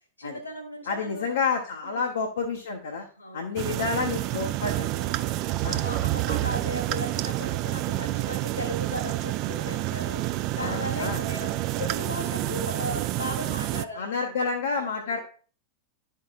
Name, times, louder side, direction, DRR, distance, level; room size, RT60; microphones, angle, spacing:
voice 1, 0.2-1.3 1.8-2.2 3.2-3.9 4.9-10.2 10.5-15.2, left 1 dB, 80° left, 5 dB, 1.5 m, -37 dB
voice 2, 0.9-3.1 3.3-4.9 5.6-5.8 10.6-11.2 13.9-15.2, left 5 dB, 65° left, 2 dB, 0.7 m, -29 dB
sound 1, 3.6-13.8, right 16 dB, 40° right, 0.3 m, -29 dB
11.0 x 4.5 x 2.4 m, 0.41 s
figure-of-eight pair, 90°, 0 cm